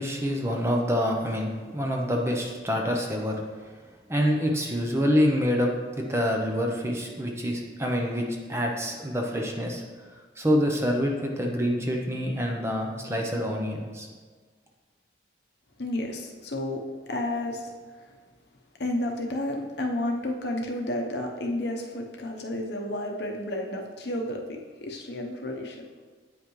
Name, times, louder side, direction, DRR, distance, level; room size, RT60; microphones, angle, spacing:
voice 1, 0.0-3.4 3.6-3.7 4.1-9.8 10.4-14.1, equal, 15° right, 1 dB, 0.7 m, -26 dB
voice 2, 15.8-18.2 18.8-25.8, left 1 dB, 60° left, 1 dB, 0.8 m, -31 dB
8.6 x 5.4 x 3.2 m, 1.5 s
head